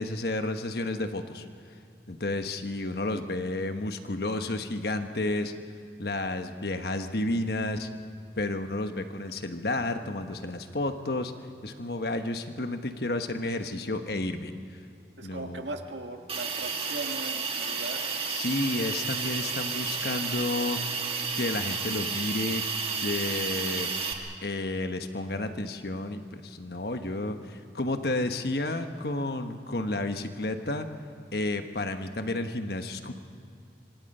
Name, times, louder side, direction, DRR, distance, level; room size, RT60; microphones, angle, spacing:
voice 1, 0.0-1.5 2.1-5.5 6.0-7.9 8.4-11.3 11.6-14.5 15.2-15.7 18.2-20.8 21.3-22.6 23.0-23.9 24.4-30.9 31.3-33.1, left 2 dB, 60° left, 7 dB, 1.2 m, -31 dB
voice 2, 15.2-18.0, right 2 dB, 90° right, 4 dB, 1.8 m, -38 dB
Hiss, 16.3-24.1, right 5 dB, 30° right, 1.8 m, -31 dB
26.0 x 25.5 x 5.5 m, 2.4 s
head